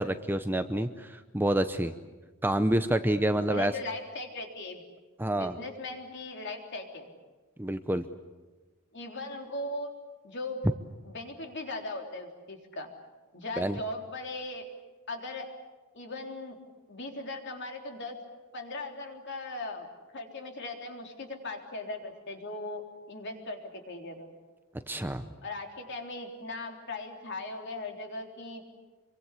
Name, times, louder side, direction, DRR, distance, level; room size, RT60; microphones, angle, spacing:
voice 1, 0.0-1.9 2.4-3.7 5.2-5.6 7.6-8.0 13.6-13.8 24.9-25.3, right 1 dB, 10° right, 9 dB, 0.7 m, -28 dB
voice 2, 3.3-4.8 5.3-7.1 8.9-9.9 10.2-10.6 11.0-12.9 13.3-14.7 15.1-15.5 15.9-16.6 16.9-18.2 18.5-19.9 20.1-22.8 23.1-24.3 25.4-28.6, left 2 dB, 55° left, 3 dB, 3.6 m, -38 dB
26.5 x 24.0 x 8.4 m, 1.3 s
head